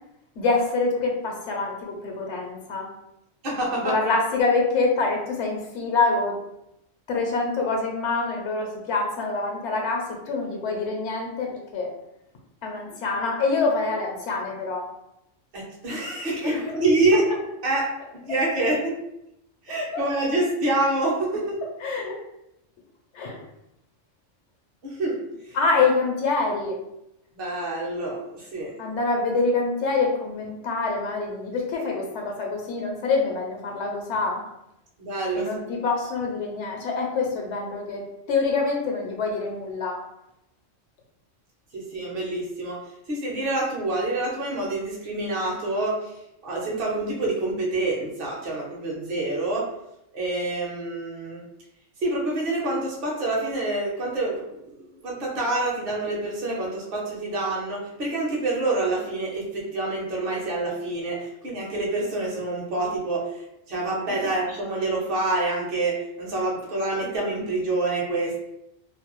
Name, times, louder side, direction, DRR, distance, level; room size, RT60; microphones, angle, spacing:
voice 1, 0.4-2.9 3.8-6.4 7.1-11.9 12.6-14.8 16.4-16.8 19.9-20.1 21.8-22.2 23.1-23.4 25.5-26.8 28.8-34.4 35.4-38.0 38.3-40.0, left 3 dB, 70° left, 1 dB, 0.9 m, -25 dB
voice 2, 3.4-4.0 15.5-17.3 17.6-17.9 18.3-18.9 19.6-21.6 24.8-25.2 25.5-25.6 27.3-28.7 35.0-35.5 41.7-42.8 43.1-46.1 46.4-49.7 50.1-51.4 52.0-63.3 63.7-68.4, right 2 dB, 55° right, -2 dB, 0.9 m, -27 dB
2.6 x 2.2 x 2.9 m, 0.84 s
omnidirectional pair, 1.3 m